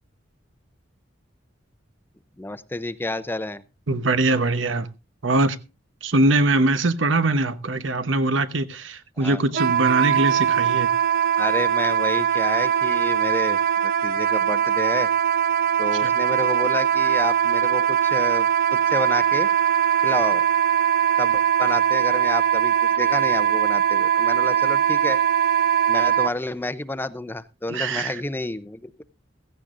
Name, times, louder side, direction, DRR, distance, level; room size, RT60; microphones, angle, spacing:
voice 1, 2.4-3.6 9.2-9.4 11.4-15.1 15.8-19.5 20.0-20.5 21.2-25.2 25.9-28.9, left 2 dB, 10° left, 0.6 m, -30 dB
voice 2, 3.9-4.9 5.2-5.6 6.0-10.9 16.0-16.1 27.7-28.1, right 2 dB, 80° right, 1.0 m, -22 dB
Wind instrument woodwind instrument, 9.5-26.3, right 9 dB, 50° right, 0.6 m, -21 dB
16.0 x 15.0 x 2.5 m
head